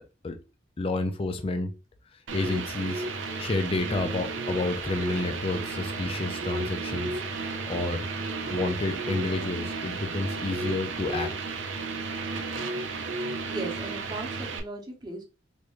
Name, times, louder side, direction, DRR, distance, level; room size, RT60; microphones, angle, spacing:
voice 1, 0.8-1.7 2.3-7.2 7.7-8.1 8.5-11.3, left 2 dB, 30° left, 0.4 m, -30 dB
sound 1, 2.3-14.6, right 3 dB, 75° right, 0.6 m, -33 dB
sound 2, 2.5-10.5, left 2 dB, 60° left, 1.0 m, -50 dB
voice 2, 13.5-15.2, right 2 dB, 20° right, 0.9 m, -37 dB
3.4 x 2.5 x 3.1 m
head